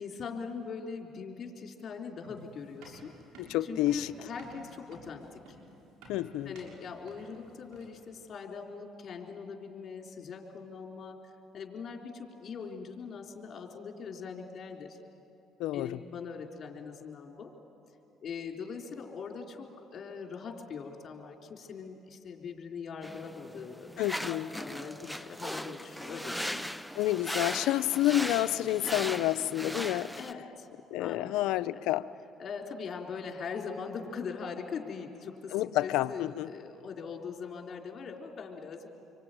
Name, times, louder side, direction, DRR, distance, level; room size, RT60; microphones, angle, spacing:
voice 1, 0.0-3.1 3.6-5.6 6.5-11.2 11.5-15.0 15.7-17.5 18.2-26.6 30.1-30.7 31.0-31.8 32.4-38.9, left 5 dB, 50° left, 1 dB, 3.7 m, -41 dB
sound 1, 2.2-8.1, right 2 dB, 85° right, 6.6 m, -52 dB
voice 2, 3.4-4.1 6.1-6.5 15.6-16.0 24.0-24.5 27.0-30.1 30.9-32.1 35.5-36.5, left 14 dB, 80° left, 14 dB, 0.6 m, -29 dB
sound 2, 23.0-30.3, equal, ahead, 0.7 m, -38 dB
26.5 x 24.0 x 9.2 m, 2.8 s
supercardioid pair, 85°, 0 cm